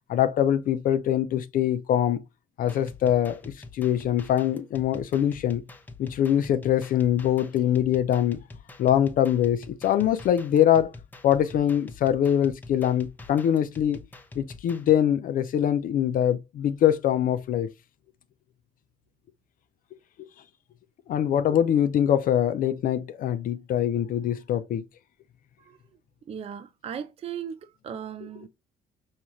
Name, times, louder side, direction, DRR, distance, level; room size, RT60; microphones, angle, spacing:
voice 1, 0.1-2.2 2.6-5.6 6.0-8.4 8.8-10.9 11.2-14.0 14.4-17.7 21.1-24.8, left 10 dB, 55° left, 0.5 m, -23 dB
sound 1, 2.6-14.9, left 3 dB, 10° left, 0.7 m, -46 dB
voice 2, 26.3-28.5, right 8 dB, 35° right, 0.4 m, -37 dB
5.5 x 2.4 x 3.0 m
cardioid pair, 110°, 17 cm